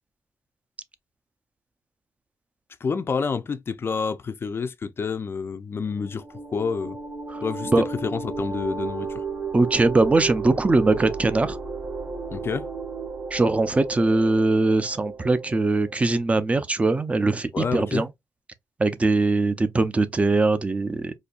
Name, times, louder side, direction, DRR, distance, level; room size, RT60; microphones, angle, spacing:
voice 1, 2.8-6.2 6.5-7.0 7.4-9.2 12.3-12.7 17.5-18.0, left 5 dB, 40° left, 0.4 m, -28 dB
sound 1, 5.9-16.1, right 4 dB, 45° right, 1.8 m, -34 dB
voice 2, 9.5-11.6 13.3-18.1 18.8-21.1, right 3 dB, 20° right, 0.5 m, -21 dB
4.2 x 2.7 x 2.3 m
wide cardioid pair, 120°, 6 cm